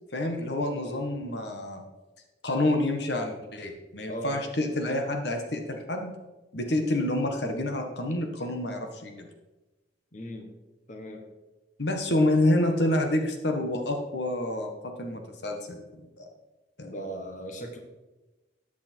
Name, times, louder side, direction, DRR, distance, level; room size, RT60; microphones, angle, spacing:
voice 1, 0.1-1.8 2.4-6.1 6.5-9.3 11.8-14.7 15.0-16.3 16.8-16.9, left 1 dB, 60° left, 4 dB, 1.5 m, -28 dB
voice 2, 10.1-10.5 10.9-11.3 16.8-17.8, equal, 40° left, 3 dB, 1.5 m, -38 dB
14.0 x 9.3 x 4.6 m, 1.1 s
head